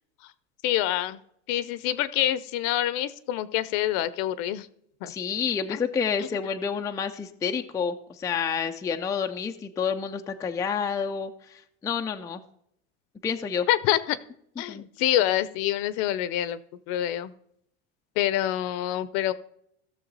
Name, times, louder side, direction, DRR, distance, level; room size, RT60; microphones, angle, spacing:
voice 1, 0.6-1.2 1.5-4.7 5.0-5.1 5.7-5.8 6.2-6.3 13.7-14.2 14.6-16.6 16.9-17.3 18.2-19.3, left 13 dB, 60° left, 16 dB, 0.7 m, -26 dB
voice 2, 5.1-12.4 13.2-13.7 14.7-14.9, left 6 dB, 10° left, 5 dB, 0.4 m, -29 dB
15.5 x 6.8 x 4.0 m, 0.72 s
supercardioid pair, 130°, 37 cm